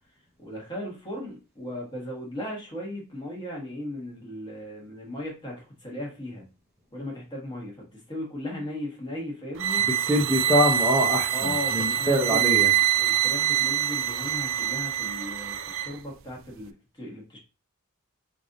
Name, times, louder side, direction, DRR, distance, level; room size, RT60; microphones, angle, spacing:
voice 1, 0.4-6.4 6.9-9.9 11.3-17.4, left 1 dB, 20° left, -2 dB, 1.3 m, -37 dB
sound 1, 9.6-15.9, right 11 dB, 60° right, 0.3 m, -25 dB
voice 2, 10.1-12.7, equal, 10° right, -6 dB, 0.6 m, -24 dB
3.3 x 2.6 x 3.8 m, 0.32 s
head